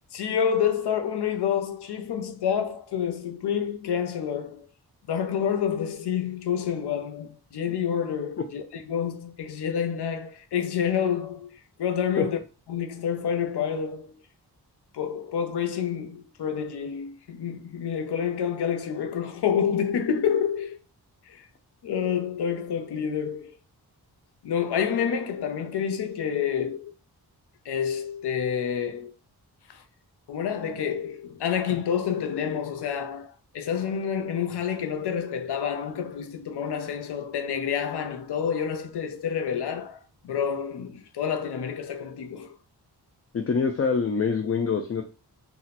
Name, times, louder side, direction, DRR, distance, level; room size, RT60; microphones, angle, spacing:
voice 1, 0.1-4.7 5.1-11.5 11.8-12.4 12.7-14.1 14.9-20.8 21.3-21.4 21.8-23.6 24.4-26.9 27.7-29.1 29.7-29.8 30.3-42.6, left 8 dB, 80° left, 0.6 m, -28 dB
voice 2, 43.3-45.0, left 5 dB, 35° left, 0.4 m, -25 dB
2.8 x 2.1 x 4.0 m
wide cardioid pair, 100°, 39 cm